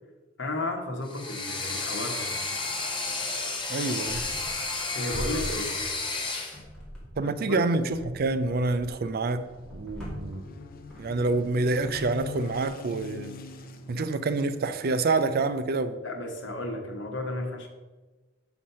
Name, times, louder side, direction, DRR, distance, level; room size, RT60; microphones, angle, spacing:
voice 1, 0.4-2.3 4.9-5.8 7.2-7.6 14.0-14.1 16.0-17.7, left 1 dB, 65° left, 1.4 m, -33 dB
sound 1, 1.0-6.6, left 3 dB, 25° left, 1.2 m, -32 dB
voice 2, 3.7-4.2 7.2-9.5 9.7-10.4 11.0-13.3 13.9-16.0, right 3 dB, 50° right, 0.4 m, -27 dB
sound 2, 4.0-4.8 5.1-6.2 6.5-7.4 7.9-13.0, equal, 5° left, 2.4 m, -42 dB
sound 3, 8.1-15.6, left 4 dB, 45° left, 0.6 m, -44 dB
6.2 x 5.8 x 5.7 m
head